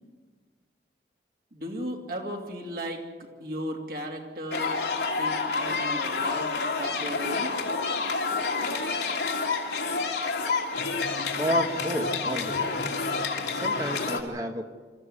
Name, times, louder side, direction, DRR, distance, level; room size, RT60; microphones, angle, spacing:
voice 1, 1.5-4.8 5.2-7.5, equal, 55° right, 1 dB, 2.8 m, -36 dB
sound 1, 4.5-14.2, left 4 dB, 80° left, 2.5 m, -28 dB
voice 2, 11.4-12.9 13.5-14.8, right 1 dB, 20° right, 5 dB, 1.1 m, -31 dB
26.5 x 14.0 x 8.1 m, 1.4 s
head